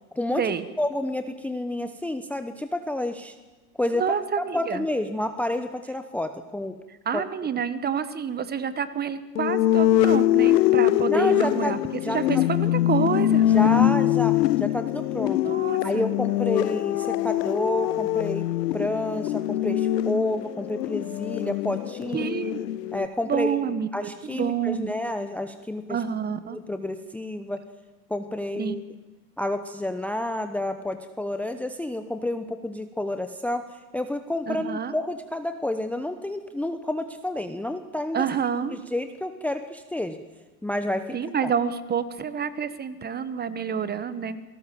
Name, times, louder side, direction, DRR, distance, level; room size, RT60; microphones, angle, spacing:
voice 1, 0.8-3.3 3.8-4.2 4.5-6.7 7.1-7.2 11.1-11.8 12.0-12.2 13.5-15.4 15.8-22.3 22.9-23.6 23.9-26.0 26.5-27.6 28.1-28.8 29.4-33.7 33.9-38.3 38.7-40.2 40.6-41.2 41.4-41.5, left 1 dB, 5° left, 9 dB, 0.9 m, -29 dB
voice 2, 3.9-4.9 6.9-11.8 12.1-13.5 15.4-16.1 22.1-22.6 23.2-24.9 25.9-26.6 28.6-28.7 34.5-34.9 38.1-38.8 41.1-44.4, right 7 dB, 20° right, 14 dB, 1.2 m, -28 dB
sound 1, 9.3-23.1, left 13 dB, 80° left, 0.8 m, -23 dB
27.5 x 18.0 x 7.7 m, 1.2 s
hypercardioid pair, 115°, 48 cm